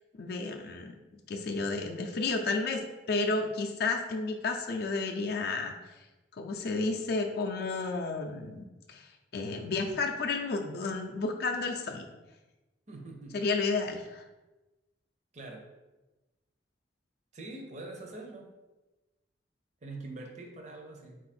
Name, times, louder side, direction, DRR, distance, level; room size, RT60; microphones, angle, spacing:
voice 1, 0.2-0.9 1.3-5.7 6.4-12.1 13.3-14.2, left 3 dB, 60° left, 3 dB, 0.4 m, -32 dB
voice 2, 12.9-13.3 15.3-15.6 17.3-18.5 19.8-21.2, right 2 dB, 40° right, 2 dB, 0.6 m, -44 dB
3.9 x 2.5 x 4.2 m, 1.1 s
head